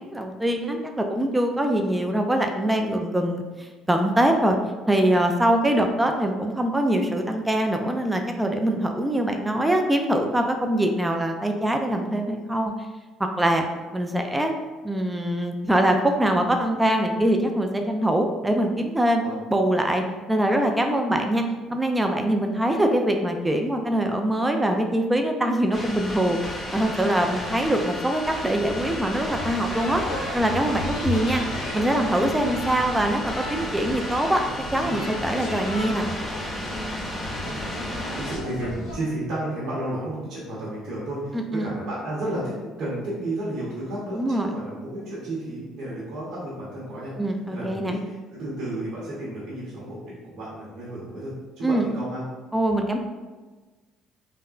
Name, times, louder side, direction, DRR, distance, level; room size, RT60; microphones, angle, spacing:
voice 1, 0.0-4.6 4.9-12.7 13.2-13.7 13.9-14.5 14.8-19.2 19.5-21.4 21.7-26.4 26.7-30.0 30.3-31.4 31.7-34.4 34.7-36.1 41.3-41.8 44.1-44.5 47.2-47.9 51.6-51.9 52.5-53.0, right 1 dB, 10° right, 4 dB, 0.3 m, -23 dB
sound 1, 25.7-38.4, left 1 dB, 5° left, 0.8 m, -33 dB
sound 2, 28.5-39.0, left 1 dB, 85° left, 0.7 m, -34 dB
voice 2, 38.1-47.1 47.5-52.2, right 1 dB, 70° right, -8 dB, 0.9 m, -32 dB
3.4 x 2.1 x 2.4 m, 1.3 s
supercardioid pair, 70°, 0 cm